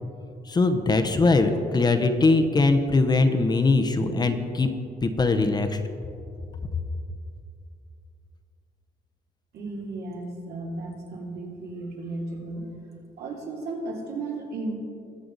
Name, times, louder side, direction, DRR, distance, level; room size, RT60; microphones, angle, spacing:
voice 1, 0.5-4.7 5.0-5.8, left 3 dB, 25° left, 7 dB, 0.7 m, -21 dB
voice 2, 9.5-12.7 13.2-14.8, right 2 dB, 75° right, -2 dB, 2.9 m, -34 dB
21.0 x 7.7 x 4.0 m, 2.5 s
cardioid pair, 140°, 17 cm